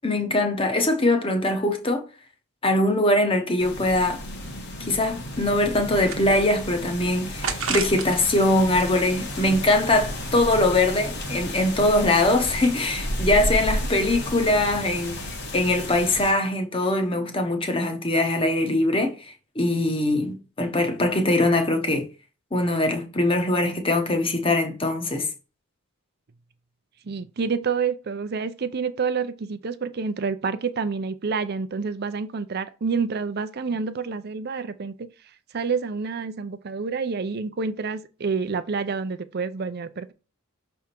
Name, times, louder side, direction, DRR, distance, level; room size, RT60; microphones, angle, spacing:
voice 1, 0.0-2.0 2.6-4.2 4.8-22.1 22.5-25.3, left 1 dB, 25° left, 1.0 m, -22 dB
sound 1, 3.6-16.3, left 1 dB, 50° left, 1.3 m, -32 dB
sound 2, 5.8-6.7 7.4-8.3 8.7-9.9, right 6 dB, 70° right, 1.1 m, -33 dB
voice 2, 27.1-35.1 35.5-40.1, right 5 dB, 45° right, 0.5 m, -28 dB
6.2 x 3.5 x 4.5 m
head